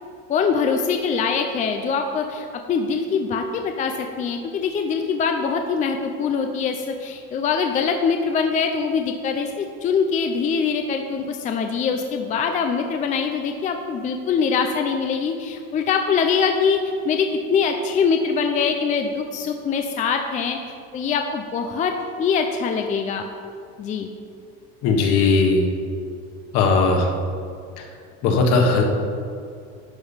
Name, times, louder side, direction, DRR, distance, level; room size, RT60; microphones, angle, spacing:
voice 1, 0.3-20.6 20.9-21.9 22.2-23.2 23.8-24.1, left 5 dB, 25° left, 5 dB, 0.4 m, -23 dB
voice 2, 24.8-25.7 26.5-27.1 28.2-28.8, left 3 dB, 60° left, 2 dB, 1.6 m, -18 dB
10.5 x 5.3 x 5.6 m, 2.4 s
cardioid pair, 150°, 32 cm